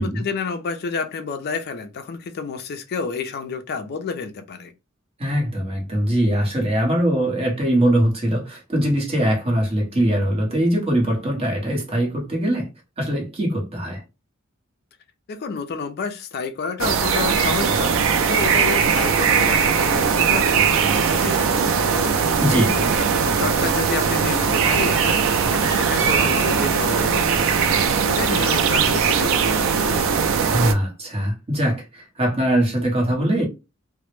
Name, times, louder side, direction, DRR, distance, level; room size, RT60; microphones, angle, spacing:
voice 1, 0.2-4.7 15.3-22.3 23.1-30.1, left 5 dB, 50° left, 0.4 m, -30 dB
voice 2, 5.2-12.7 13.0-14.0 22.4-23.0 30.5-33.4, right 1 dB, 30° right, 0.9 m, -22 dB
sound 1, 16.8-30.7, right 6 dB, 65° right, 0.4 m, -20 dB
2.1 x 2.0 x 3.0 m
head